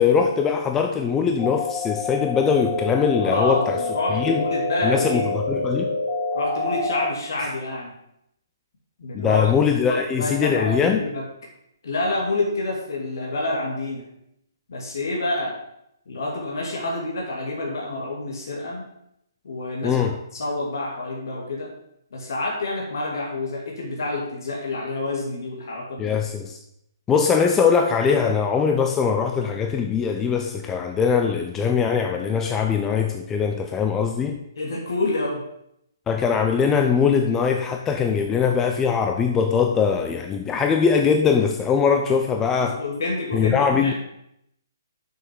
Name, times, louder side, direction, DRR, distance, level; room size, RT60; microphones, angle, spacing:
voice 1, 0.0-3.8 4.1-4.4 4.8-6.0 9.1-11.0 19.8-20.2 26.0-26.6 27.1-34.4 36.1-42.8 43.3-43.9, left 6 dB, 15° left, 4 dB, 0.6 m, -21 dB
sound 1, 1.4-7.1, left 3 dB, 30° left, 3.5 m, -27 dB
voice 2, 3.2-5.3 6.3-8.0 9.0-9.4 9.9-11.3 11.8-14.1 14.7-15.6 16.1-18.9 19.4-20.0 20.3-21.7 22.1-26.1 31.7-31.9 34.5-35.4 42.6-43.9, left 2 dB, 60° left, -2 dB, 2.5 m, -28 dB
6.7 x 6.5 x 7.4 m, 0.78 s
figure-of-eight pair, 140°, 2 cm